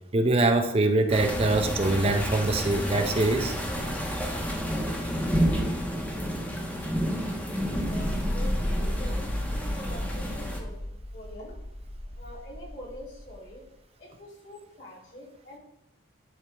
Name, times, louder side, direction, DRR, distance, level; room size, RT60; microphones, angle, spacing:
voice 1, 0.1-3.5, right 2 dB, 30° right, 6 dB, 0.5 m, -23 dB
sound 1, 1.1-10.6, equal, 10° left, 0.9 m, -30 dB
sound 2, 7.4-13.5, left 1 dB, 35° left, 1.0 m, -33 dB
voice 2, 7.8-11.6 12.2-13.6 14.0-15.6, equal, 65° left, -6 dB, 2.9 m, -45 dB
10.5 x 4.5 x 3.4 m, 0.82 s
head